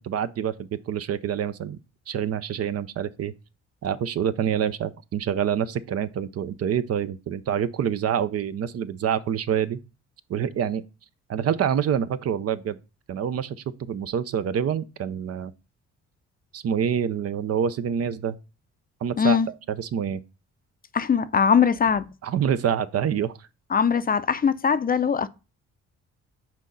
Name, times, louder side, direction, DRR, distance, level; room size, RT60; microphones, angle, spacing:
voice 1, 0.0-1.8 2.1-3.3 3.8-9.8 10.3-10.8 11.3-12.8 13.1-13.6 13.9-15.5 16.5-18.4 19.0-19.4 19.7-20.2 22.2-23.4, right 8 dB, 55° right, 0.6 m, -26 dB
voice 2, 19.2-19.5 20.9-22.1 23.7-25.3, left 7 dB, 30° left, 0.5 m, -21 dB
6.2 x 4.2 x 3.8 m
cardioid pair, 90°, 30 cm